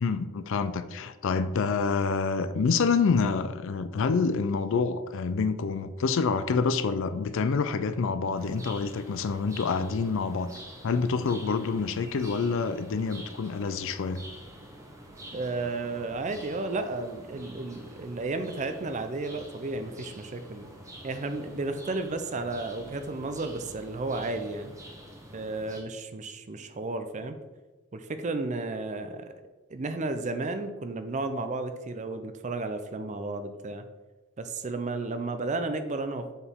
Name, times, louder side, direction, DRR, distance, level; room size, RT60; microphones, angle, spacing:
voice 1, 0.0-10.5 10.8-14.2, left 5 dB, 60° left, 12 dB, 0.4 m, -27 dB
sound 1, 8.3-25.8, equal, 15° right, 0.9 m, -47 dB
voice 2, 15.3-20.7 21.0-24.7 25.3-27.4 27.9-29.3 29.7-33.8 34.4-36.3, right 3 dB, 35° right, 9 dB, 0.4 m, -33 dB
7.0 x 4.5 x 3.6 m, 1.2 s
head